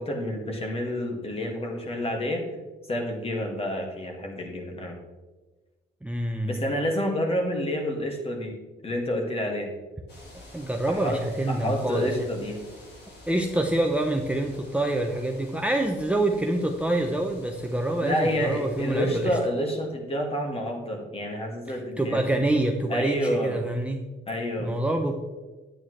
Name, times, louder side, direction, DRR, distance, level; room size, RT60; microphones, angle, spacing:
voice 1, 0.0-2.4 2.9-5.0 6.4-8.6 8.8-9.7 10.9-11.2 11.5-12.6 18.0-22.2 22.9-23.6 24.3-24.7, equal, 30° left, 2 dB, 2.0 m, -29 dB
voice 2, 6.0-6.6 10.5-12.3 13.3-19.4 21.7-24.0 24.6-25.1, right 1 dB, 5° right, 2 dB, 0.7 m, -26 dB
sound 1, 10.1-19.3, left 2 dB, 60° left, 2.8 m, -49 dB
9.2 x 8.8 x 3.2 m, 1.2 s
cardioid pair, 90°, 20 cm